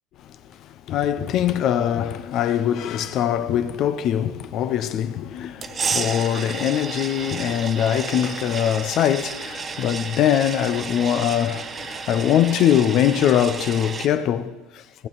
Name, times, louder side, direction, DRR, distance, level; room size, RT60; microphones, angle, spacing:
voice 1, 0.2-15.1, left 10 dB, 55° left, 0.7 m, -22 dB
sound 1, 5.6-14.1, right 5 dB, 30° right, 0.8 m, -32 dB
15.0 x 8.8 x 4.1 m
supercardioid pair, 100°, 0 cm